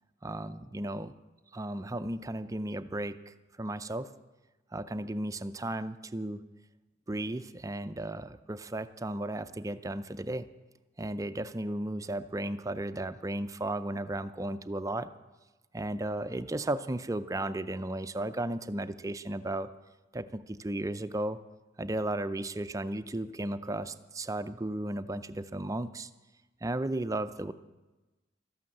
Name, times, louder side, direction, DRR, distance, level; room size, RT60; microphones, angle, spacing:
voice 1, 0.2-1.2 1.5-4.1 4.7-6.4 7.1-10.5 11.0-15.1 15.7-19.7 20.1-21.4 21.8-26.1 26.6-27.5, right 1 dB, 15° right, 12 dB, 0.5 m, -34 dB
13.0 x 11.5 x 7.8 m, 1.1 s
head